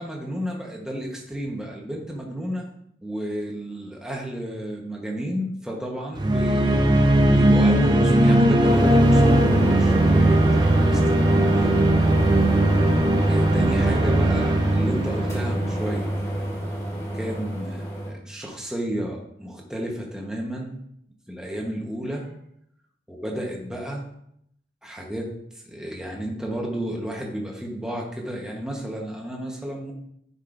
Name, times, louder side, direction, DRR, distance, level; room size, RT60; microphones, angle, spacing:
voice 1, 0.0-2.7 3.0-6.8 7.2-11.8 13.3-16.1 17.1-20.7 21.3-22.4 23.1-24.1 24.8-25.3 25.6-29.9, equal, 5° right, -1 dB, 1.1 m, -32 dB
sound 1, 6.2-16.2, right 1 dB, 25° right, 0.5 m, -19 dB
sound 2, 8.6-18.1, right 1 dB, 15° left, 1.3 m, -25 dB
9.8 x 5.3 x 2.6 m, 0.74 s
head